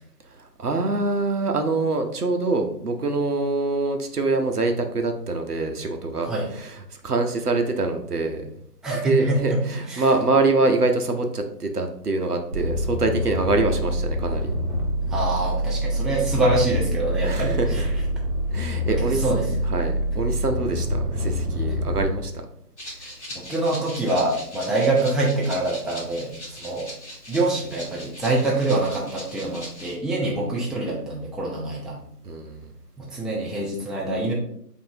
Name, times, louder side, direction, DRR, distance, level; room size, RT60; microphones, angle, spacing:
voice 1, 0.3-8.5 9.0-14.5 17.2-17.8 18.5-19.3 19.7-22.5 23.0-23.1 30.2-30.4 32.2-32.7, right 3 dB, 65° right, 5 dB, 0.7 m, -25 dB
voice 2, 8.8-9.6 9.9-10.1 15.1-17.9 19.0-19.5 23.5-26.3 26.6-26.9 27.3-32.0 33.0-34.3, right 2 dB, ahead, -5 dB, 0.4 m, -25 dB
sound 1, 12.5-22.1, equal, 45° right, 1.3 m, -26 dB
Rattle (instrument), 22.8-30.0, equal, 45° left, 1.1 m, -40 dB
4.7 x 2.6 x 2.7 m, 0.69 s
figure-of-eight pair, 160°, 50 cm